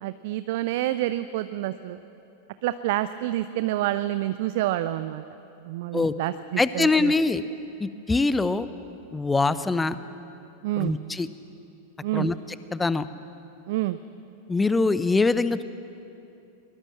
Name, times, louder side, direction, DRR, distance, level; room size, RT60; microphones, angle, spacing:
voice 1, 0.0-2.0 2.6-5.2 5.6-7.1 10.6-11.0 12.0-12.3 13.7-14.0, right 15 dB, 50° right, 13 dB, 0.6 m, -28 dB
voice 2, 6.6-7.4 7.8-8.7 9.1-10.0 10.8-11.3 12.1-12.3 12.7-13.1 14.5-15.6, left 3 dB, 10° left, 14 dB, 0.9 m, -23 dB
22.5 x 21.5 x 7.6 m, 2.8 s
figure-of-eight pair, 90°, 0 cm